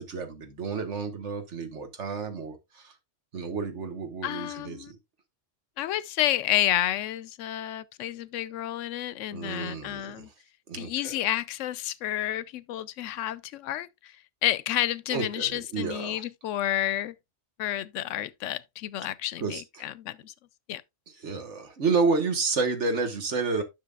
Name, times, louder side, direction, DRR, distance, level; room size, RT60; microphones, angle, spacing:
voice 1, 0.0-3.0 3.3-5.0 9.3-10.3 10.7-11.2 15.1-16.2 19.4-19.9 21.1-23.6, right 4 dB, 70° right, 1.7 m, -30 dB
voice 2, 4.2-4.9 5.8-10.3 10.7-14.1 14.4-17.1 17.6-20.3 20.7-20.8, left 12 dB, 85° left, 0.9 m, -30 dB
10.5 x 6.2 x 2.4 m
omnidirectional pair, 1.2 m